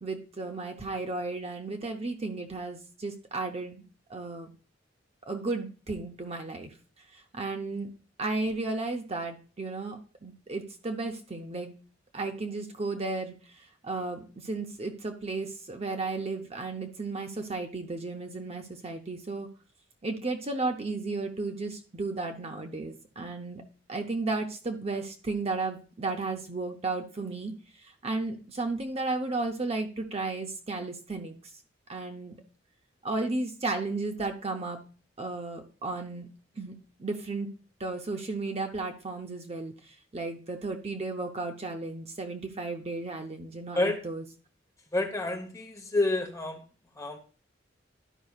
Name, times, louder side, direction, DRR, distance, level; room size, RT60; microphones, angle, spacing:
voice 1, 0.0-3.8 4.1-4.5 5.2-6.7 7.1-7.9 8.2-11.7 12.1-19.5 20.0-23.6 23.9-31.4 31.9-32.4 33.0-34.8 35.2-36.3 36.6-37.5 37.8-44.3, right 3 dB, 35° right, 4 dB, 0.7 m, -34 dB
voice 2, 44.9-46.6 47.0-47.2, left 2 dB, 15° left, 3 dB, 1.1 m, -28 dB
12.0 x 5.4 x 2.4 m, 0.36 s
head